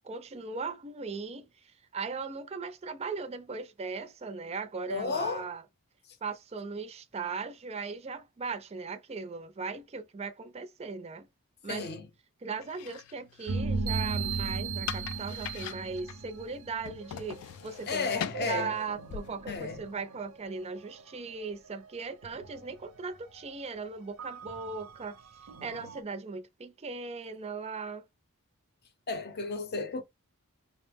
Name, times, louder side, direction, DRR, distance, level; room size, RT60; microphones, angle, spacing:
voice 1, 0.0-5.6 6.2-11.3 11.6-11.9 12.4-25.2 25.6-28.1, right 4 dB, 30° right, 0.4 m, -38 dB
voice 2, 4.9-5.5 11.7-12.1 17.9-18.7 19.5-19.9 29.1-30.0, left 4 dB, 45° left, 0.7 m, -33 dB
sound 1, 12.6-20.0, left 9 dB, 80° left, 0.3 m, -43 dB
sound 2, 13.5-17.4 17.8-21.0 21.4-21.5 22.0-23.0 23.3-23.5 24.2-26.0, right 4 dB, 75° right, 0.6 m, -37 dB
4.7 x 2.0 x 3.4 m
head